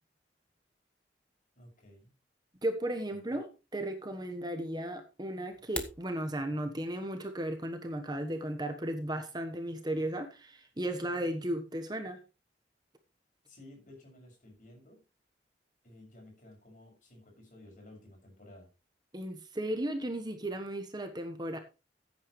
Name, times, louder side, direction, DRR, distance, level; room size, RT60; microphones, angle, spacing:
voice 1, 1.5-2.1 3.1-3.4 13.5-15.0 15.8-18.7, left 1 dB, 45° left, 1 dB, 6.6 m, -54 dB
voice 2, 2.6-12.2 19.1-21.6, right 1 dB, 25° right, 6 dB, 1.2 m, -35 dB
sound 1, 5.5-6.1, left 2 dB, 5° left, 1.3 m, -39 dB
15.0 x 9.3 x 3.2 m, 0.29 s
head